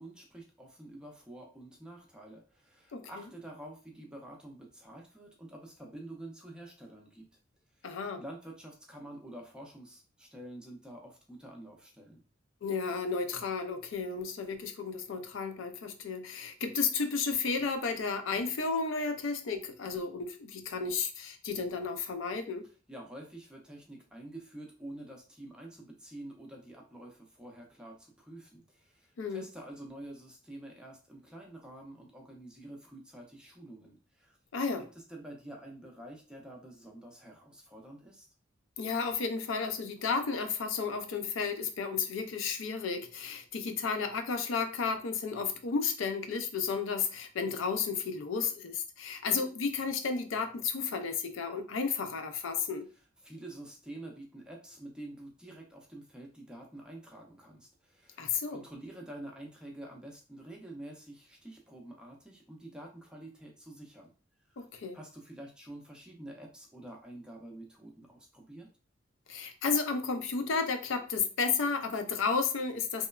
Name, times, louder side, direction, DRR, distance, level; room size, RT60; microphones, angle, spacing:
voice 1, 0.0-7.2 7.8-12.2 22.9-34.4 34.9-38.3 53.2-64.1 64.5-64.7 64.9-68.7, right 1 dB, 5° right, 0.4 m, -48 dB
voice 2, 7.8-8.2 12.6-22.6 29.2-29.5 34.5-34.8 38.8-52.9 58.2-58.6 64.6-65.0 69.3-73.1, left 5 dB, 75° left, 0.4 m, -33 dB
3.0 x 2.1 x 2.2 m
head